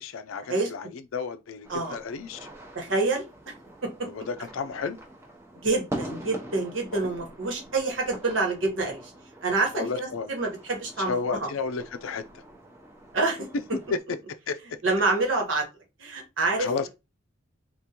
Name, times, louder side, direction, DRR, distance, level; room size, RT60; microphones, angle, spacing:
voice 1, 0.0-2.5 4.0-5.0 6.9-7.1 9.7-10.3 11.1-12.2 14.5-14.6 16.6-16.9, left 5 dB, 85° left, 0.4 m, -32 dB
sound 1, 1.6-14.0, right 1 dB, 15° right, 0.6 m, -43 dB
voice 2, 2.7-3.2 3.8-3.9 5.6-9.1 9.4-11.5 13.1-13.5 14.8-15.7 16.0-16.7, right 3 dB, 75° right, 1.2 m, -27 dB
3.6 x 2.4 x 2.9 m
head